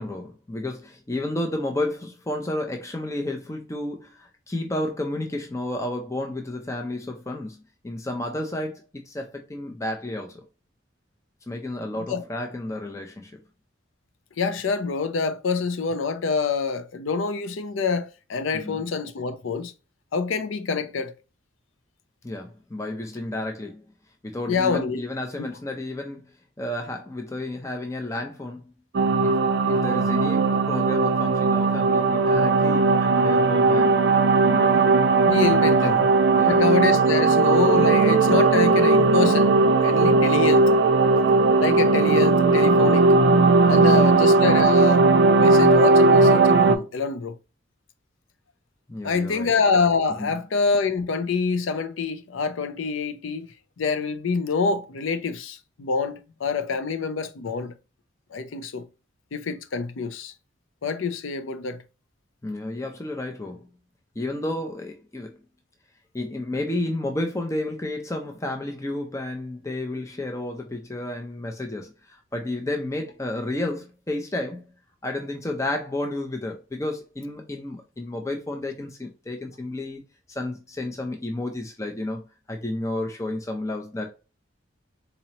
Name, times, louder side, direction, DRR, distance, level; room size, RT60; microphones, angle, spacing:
voice 1, 0.0-10.4 11.5-13.4 18.5-18.9 22.2-23.9 24.2-26.3 26.6-28.7 29.2-29.3 29.6-34.1 34.4-34.8 35.7-36.0 36.4-36.6 43.6-44.2 48.9-49.5 50.2-50.4 62.4-63.7 64.2-65.4 66.1-74.6 75.0-80.0 80.3-82.2 82.5-84.1, left 1 dB, 15° left, 0.5 m, -31 dB
voice 2, 14.4-19.7 20.1-21.1 24.5-25.0 25.4-25.5 35.3-36.1 36.5-39.5 39.8-40.7 41.6-43.1 43.7-45.1 45.4-47.4 49.0-53.5 53.8-57.7 58.3-58.9 59.3-60.3 60.8-61.8, left 5 dB, 75° left, 0.5 m, -26 dB
sound 1, 28.9-46.8, right 3 dB, 60° right, 0.4 m, -18 dB
4.0 x 2.9 x 2.8 m
head